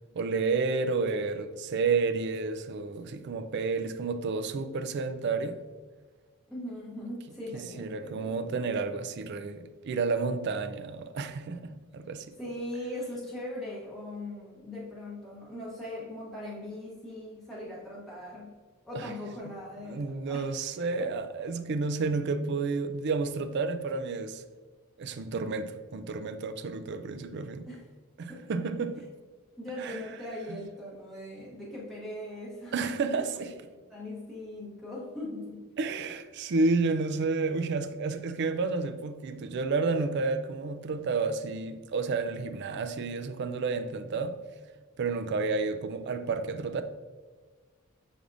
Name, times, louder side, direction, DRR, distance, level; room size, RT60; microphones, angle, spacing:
voice 1, 0.1-5.6 7.5-12.4 18.9-19.1 19.5-19.6 19.9-24.4 25.0-27.7 28.2-29.1 29.8-30.1 32.7-33.5 35.8-44.4 45.0-46.8, right 4 dB, 50° right, 0.3 m, -31 dB
voice 2, 6.5-8.6 12.4-18.5 18.8-20.6 21.0-21.1 27.7-27.8 28.3-28.5 29.6-32.7 33.1-33.2 33.9-35.7, left 1 dB, ahead, 0.9 m, -40 dB
6.2 x 3.4 x 2.5 m
head